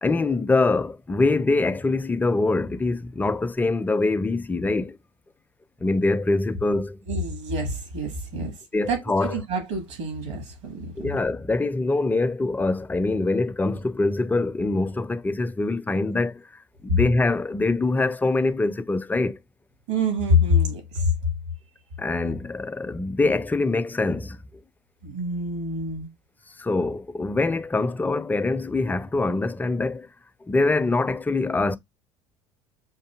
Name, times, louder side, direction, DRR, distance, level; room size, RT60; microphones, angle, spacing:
voice 1, 0.0-5.0 5.8-7.0 8.3-9.3 11.0-19.4 22.0-24.4 26.6-30.1 30.5-31.8, left 3 dB, 10° left, 0.4 m, -24 dB
voice 2, 7.1-8.5 8.9-11.2 19.9-21.1 25.0-26.1, left 2 dB, 75° right, 1.6 m, -26 dB
5.8 x 2.6 x 2.3 m
hypercardioid pair, 65°, 16 cm